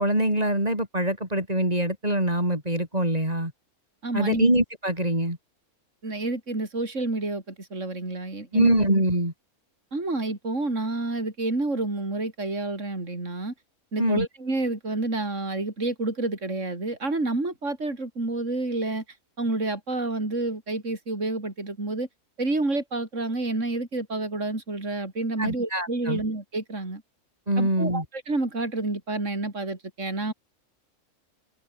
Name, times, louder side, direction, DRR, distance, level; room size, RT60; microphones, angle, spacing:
voice 1, 0.0-3.5 4.1-5.4 8.5-9.3 14.0-14.3 25.4-26.2 27.5-28.0, right 1 dB, 25° right, 6.5 m, -24 dB
voice 2, 4.0-4.5 6.0-8.7 9.9-13.5 13.9-19.0 19.4-22.1 22.4-27.0 27.6-30.3, right 2 dB, 50° right, 4.9 m, -29 dB
omnidirectional pair, 1.6 m